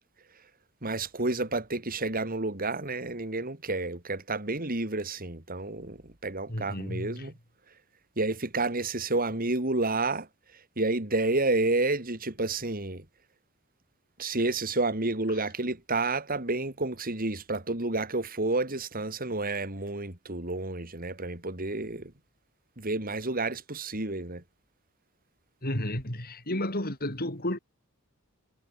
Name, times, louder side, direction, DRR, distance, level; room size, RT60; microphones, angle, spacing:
voice 1, 0.8-7.3 8.2-10.3 10.5-13.0 14.2-22.1 22.8-24.4, right 2 dB, 40° right, 3.3 m, -30 dB
voice 2, 6.5-7.3 25.6-27.6, left 1 dB, 45° left, 6.9 m, -32 dB
head